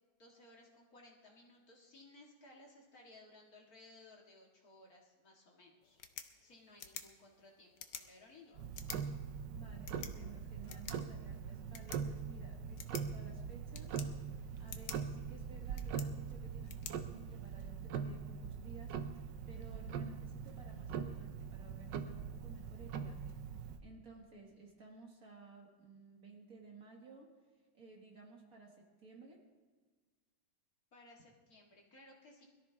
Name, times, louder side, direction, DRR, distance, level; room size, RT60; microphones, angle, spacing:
voice 1, 0.2-6.0 6.4-8.5 30.9-32.4, left 2 dB, 50° left, -1 dB, 2.4 m, -60 dB
sound 1, 5.8-17.8, left 8 dB, 70° left, 1.5 m, -52 dB
Tick-tock, 8.6-23.8, right 6 dB, 70° right, 1.4 m, -42 dB
voice 2, 9.5-14.0 14.6-19.0 19.5-27.3 27.7-29.4, right 3 dB, 50° right, 0 dB, 2.3 m, -57 dB
22.0 x 13.5 x 3.5 m, 1.4 s
omnidirectional pair, 2.1 m